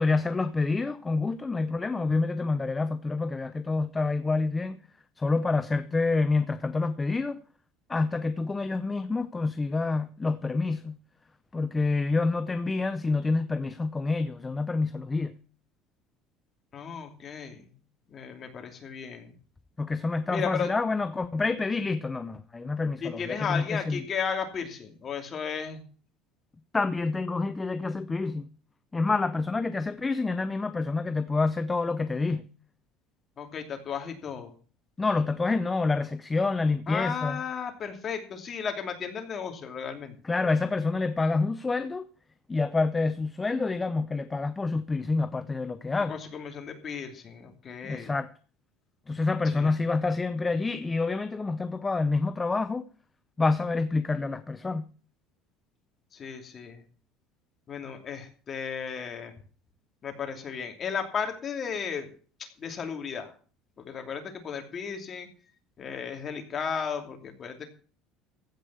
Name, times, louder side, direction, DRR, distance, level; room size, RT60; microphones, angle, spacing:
voice 1, 0.0-4.8 5.2-7.4 7.9-11.0 11.5-15.3 19.8-24.0 26.7-28.5 28.9-32.5 35.0-37.4 40.2-42.1 42.5-46.2 47.8-48.3 49.1-52.9 53.4-54.9, left 3 dB, 15° left, 0.6 m, -27 dB
voice 2, 16.7-17.7 18.1-19.3 20.3-20.7 23.0-25.8 33.4-34.5 36.9-40.2 46.1-48.1 49.5-49.8 56.1-56.8 57.7-59.3 60.0-62.1 62.4-63.3 63.8-65.3 65.8-67.7, left 6 dB, 30° left, 2.7 m, -34 dB
15.5 x 5.3 x 8.4 m
cardioid pair, 135°, 0 cm